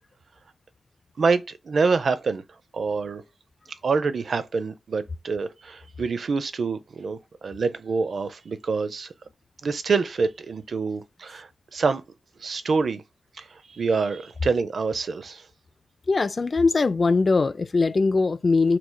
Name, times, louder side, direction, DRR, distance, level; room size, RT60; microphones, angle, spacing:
voice 1, 1.2-2.4 2.7-3.2 3.8-9.1 9.6-12.0 12.4-13.0 13.4-15.4, right 4 dB, 60° right, 0.5 m, -26 dB
voice 2, 16.1-18.8, left 3 dB, 40° left, 0.4 m, -21 dB
5.9 x 3.1 x 2.2 m
cardioid pair, 80°, 0 cm